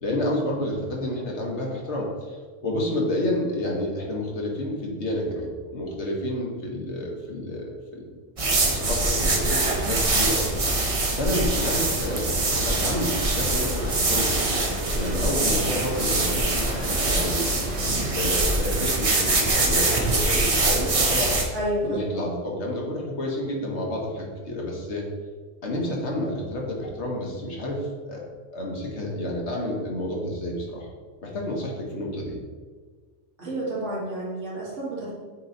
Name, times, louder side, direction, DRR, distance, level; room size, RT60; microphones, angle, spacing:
voice 1, 0.0-8.1 8.6-10.5 11.1-12.3 12.7-14.6 14.9-17.5 18.1-21.4 21.8-25.0 25.6-28.2 28.5-30.9 31.2-32.4, left 1 dB, 70° left, -1 dB, 1.5 m, -29 dB
sound 1, 8.4-21.4, right 2 dB, 35° right, 0.7 m, -24 dB
sound 2, 11.3-17.9, left 2 dB, 40° left, 0.8 m, -38 dB
voice 2, 21.5-22.2 33.4-35.1, right 1 dB, 75° right, -7 dB, 2.3 m, -30 dB
8.5 x 3.0 x 4.0 m, 1.5 s
omnidirectional pair, 1.3 m